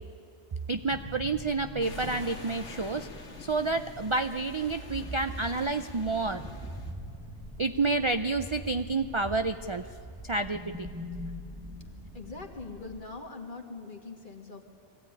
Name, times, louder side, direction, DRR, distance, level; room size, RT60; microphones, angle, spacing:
sound 1, 0.6-13.0, equal, 15° right, 1.4 m, -43 dB
voice 1, 0.7-3.1 3.4-6.4 7.6-9.9 10.2-10.9, right 3 dB, 35° right, 9 dB, 0.5 m, -29 dB
sound 2, 1.8-6.9, left 3 dB, 90° left, 2.2 m, -47 dB
voice 2, 12.1-14.6, left 3 dB, 45° left, 3 dB, 2.2 m, -42 dB
22.0 x 16.0 x 9.7 m, 2.6 s
omnidirectional pair, 1.2 m